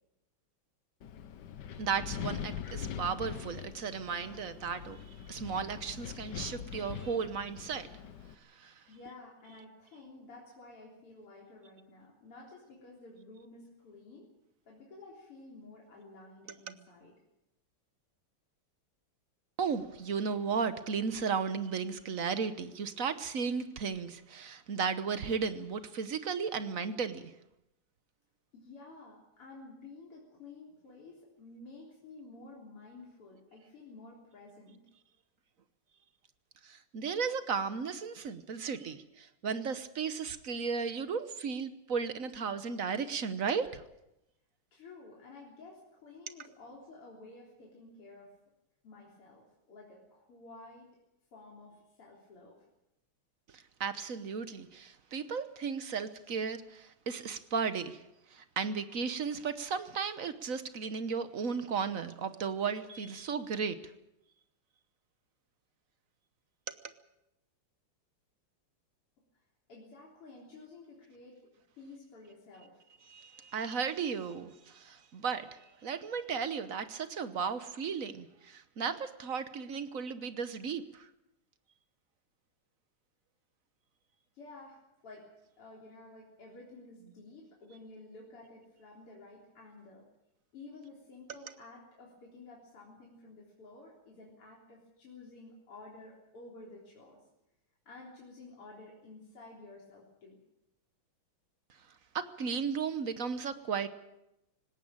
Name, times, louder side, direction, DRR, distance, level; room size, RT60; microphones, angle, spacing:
Wind, 1.0-8.3, left 8 dB, 60° left, 1.5 m, -42 dB
voice 1, 1.8-5.0 5.3-7.9 8.6-8.7 19.6-27.3 36.6-43.8 53.5-58.0 58.3-63.8 66.7-66.8 73.1-81.1 102.1-103.9, right 6 dB, 50° right, 1.1 m, -35 dB
voice 2, 8.6-14.3 14.7-17.1 28.5-34.9 44.7-48.4 48.8-50.9 51.3-52.6 69.7-72.8 84.3-85.3 85.6-90.1 90.5-97.2 97.9-100.4, left 3 dB, 85° left, 4.6 m, -52 dB
19.0 x 17.5 x 8.9 m
omnidirectional pair, 2.4 m